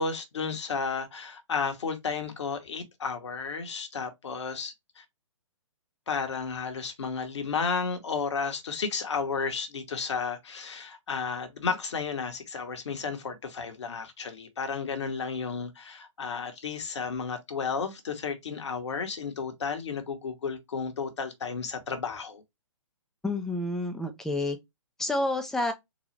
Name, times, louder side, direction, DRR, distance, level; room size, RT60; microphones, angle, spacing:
voice 1, 0.0-5.0 6.1-22.4, left 5 dB, 60° left, 1.0 m, -33 dB
voice 2, 23.2-24.6 25.0-25.7, left 2 dB, 5° left, 0.4 m, -29 dB
3.9 x 2.3 x 3.1 m
figure-of-eight pair, 125°, 17 cm